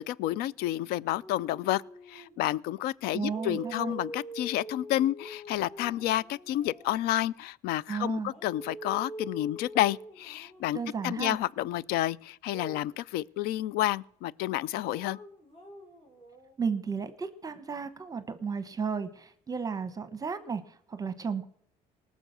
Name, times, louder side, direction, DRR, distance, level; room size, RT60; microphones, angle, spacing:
voice 1, 0.0-1.8 2.1-15.2, left 14 dB, 75° left, 0.4 m, -30 dB
sound 1, 1.2-2.3 3.2-7.3 8.3-11.1 12.5-12.9 14.8-16.5, right 1 dB, 35° left, 4.2 m, -45 dB
voice 2, 3.1-3.9 7.9-8.3 10.7-11.4 16.6-21.5, right 6 dB, 20° right, 1.0 m, -34 dB
19.0 x 6.3 x 6.8 m
cardioid pair, 110°, 16 cm